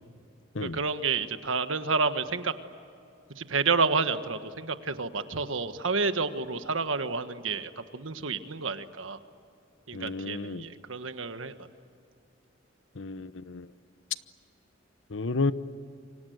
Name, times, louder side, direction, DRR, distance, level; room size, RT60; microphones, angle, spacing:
voice 1, 0.6-2.5 3.3-9.2 9.9-11.5, right 4 dB, 90° right, 10 dB, 1.5 m, -29 dB
voice 2, 9.9-10.6 13.0-13.7 15.1-15.5, left 3 dB, 75° left, 14 dB, 0.9 m, -31 dB
28.5 x 25.0 x 8.0 m, 2.6 s
head